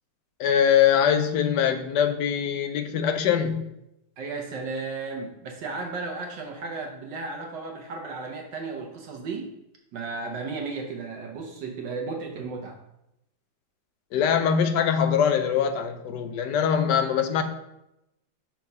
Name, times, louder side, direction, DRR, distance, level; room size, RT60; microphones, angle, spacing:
voice 1, 0.4-3.7 14.1-17.4, left 8 dB, 70° left, 8 dB, 1.1 m, -23 dB
voice 2, 4.2-9.5 9.9-12.8, right 4 dB, 70° right, 2 dB, 1.3 m, -34 dB
5.9 x 3.7 x 5.3 m, 0.85 s
omnidirectional pair, 2.1 m